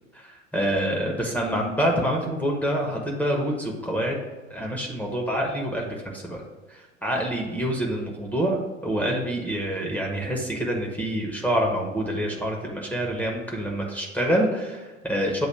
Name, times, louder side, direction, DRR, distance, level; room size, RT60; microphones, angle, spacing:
voice 1, 0.1-4.2 4.5-6.4 6.7-15.5, equal, 5° left, -1 dB, 1.1 m, -26 dB
7.7 x 2.8 x 5.7 m, 1.3 s
figure-of-eight pair, 75°, 39 cm